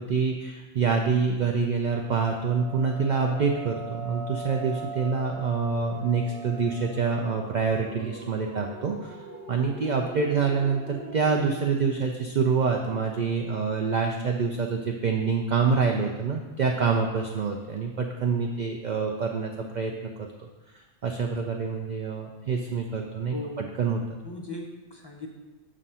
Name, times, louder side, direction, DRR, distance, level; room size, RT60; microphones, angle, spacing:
voice 1, 0.0-9.1 9.5-20.3 21.0-23.3 23.8-24.0, right 5 dB, 70° right, 2 dB, 0.4 m, -26 dB
sound 1, 1.9-11.7, right 2 dB, 50° right, 0.9 m, -41 dB
voice 2, 23.3-23.7 24.2-25.3, left 1 dB, 35° left, 0 dB, 0.4 m, -38 dB
7.3 x 2.5 x 5.4 m, 1.2 s
omnidirectional pair, 1.3 m